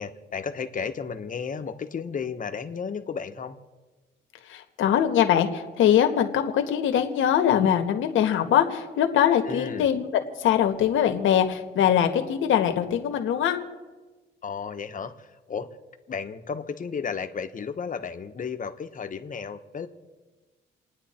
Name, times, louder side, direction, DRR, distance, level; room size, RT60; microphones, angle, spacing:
voice 1, 0.0-3.6 9.4-9.9 14.4-15.7 16.1-19.9, left 6 dB, 40° left, 8 dB, 1.3 m, -33 dB
voice 2, 4.5-10.1 10.4-13.6, left 9 dB, 80° left, 5 dB, 1.6 m, -22 dB
29.0 x 9.7 x 4.4 m, 1.3 s
cardioid pair, 90°, 20 cm